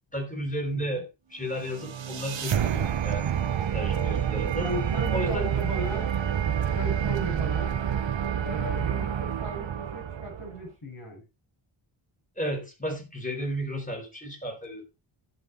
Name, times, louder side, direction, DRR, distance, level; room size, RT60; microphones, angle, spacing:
voice 1, 0.1-3.4 3.7-4.7 5.1-5.5 12.4-14.9, equal, 15° left, 4.3 m, -33 dB
sound 1, 1.5-10.6, right 9 dB, 60° right, 1.0 m, -28 dB
voice 2, 4.6-6.1 6.7-7.8 8.4-11.2, equal, 50° left, 7.2 m, -36 dB
16.0 x 6.1 x 3.3 m
wide cardioid pair, 155°, 50 cm